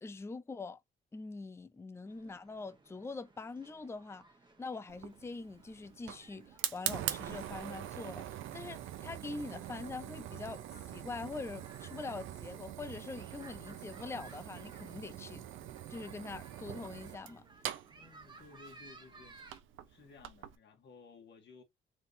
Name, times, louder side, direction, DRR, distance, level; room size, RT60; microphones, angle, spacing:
voice 1, 0.0-0.8 1.1-4.3 4.6-15.4 15.9-17.4, left 3 dB, 15° left, 0.5 m, -44 dB
sound 1, 2.1-19.6, right 3 dB, 25° right, 1.3 m, -60 dB
Fire, 4.9-20.6, right 12 dB, 80° right, 0.7 m, -44 dB
sound 2, 7.1-14.3, right 6 dB, 40° right, 0.8 m, -64 dB
voice 2, 17.9-19.4 19.9-21.6, left 4 dB, 60° left, 2.0 m, -57 dB
4.3 x 3.7 x 2.7 m
cardioid pair, 90°, 20 cm